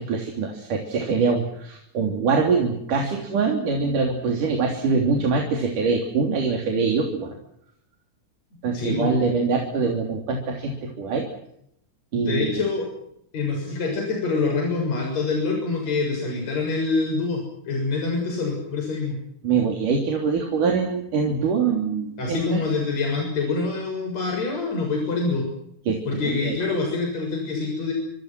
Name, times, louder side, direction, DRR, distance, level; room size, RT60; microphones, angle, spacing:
voice 1, 0.0-7.3 8.6-11.2 12.1-12.4 19.4-22.6 25.9-26.6, right 5 dB, 90° right, 2 dB, 4.8 m, -24 dB
voice 2, 8.7-9.1 12.1-12.9 13.3-19.2 22.2-25.5 26.1-27.9, left 3 dB, 60° left, 1 dB, 8.2 m, -25 dB
27.0 x 27.0 x 6.1 m, 0.75 s
omnidirectional pair, 3.6 m